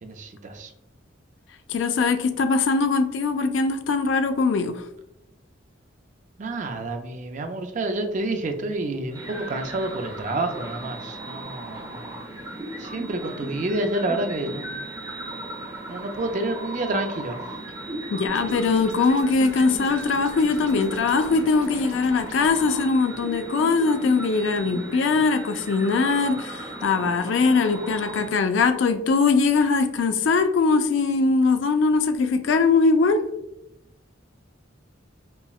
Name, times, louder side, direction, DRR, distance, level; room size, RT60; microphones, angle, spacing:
voice 1, 0.0-0.7 6.4-12.1 12.8-14.8 15.9-17.4, right 2 dB, 40° right, 0.4 m, -29 dB
voice 2, 1.7-4.8 18.1-33.2, left 4 dB, 65° left, 0.4 m, -21 dB
sound 1, 9.1-28.3, right 1 dB, 25° right, 1.0 m, -37 dB
sound 2, 18.2-22.6, right 2 dB, 75° right, 0.9 m, -43 dB
5.5 x 2.1 x 2.3 m
head